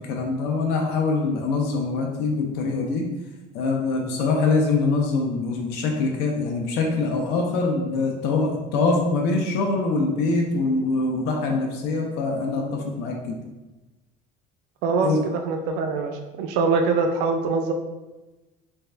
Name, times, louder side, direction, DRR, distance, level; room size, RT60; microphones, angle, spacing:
voice 1, 0.1-3.1 3.5-13.4 15.0-15.2, left 3 dB, 75° left, 1 dB, 0.5 m, -24 dB
voice 2, 14.8-17.7, right 4 dB, 75° right, 4 dB, 0.4 m, -23 dB
3.4 x 2.2 x 3.2 m, 1.1 s
cardioid pair, 150°, 17 cm